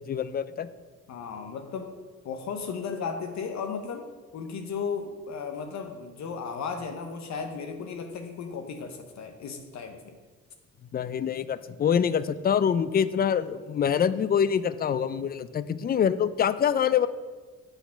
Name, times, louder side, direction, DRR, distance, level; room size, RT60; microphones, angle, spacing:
voice 1, 0.1-0.7 10.9-17.1, left 8 dB, 30° left, 15 dB, 0.4 m, -25 dB
voice 2, 1.1-1.9 2.2-4.1 4.3-10.2, left 5 dB, 65° left, 5 dB, 0.8 m, -35 dB
8.0 x 4.0 x 5.7 m, 1.4 s
cardioid pair, 90°, 30 cm